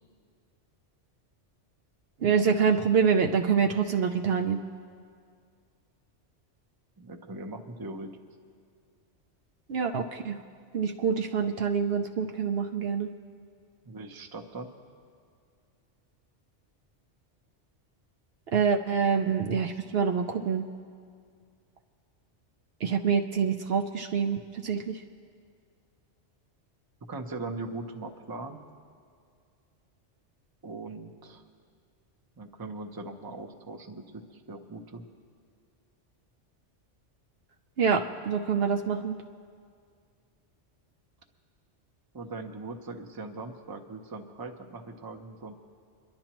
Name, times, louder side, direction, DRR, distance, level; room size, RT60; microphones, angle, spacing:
voice 1, 2.2-4.6 9.7-10.4 10.7-13.1 18.5-20.7 22.8-25.0 37.8-39.2, right 6 dB, 65° right, 4 dB, 0.8 m, -26 dB
voice 2, 7.0-8.1 13.9-14.7 27.1-28.6 30.6-31.4 32.4-35.0 42.1-45.6, right 3 dB, 25° right, 5 dB, 0.6 m, -40 dB
26.5 x 11.5 x 3.0 m, 2.2 s
omnidirectional pair, 1.2 m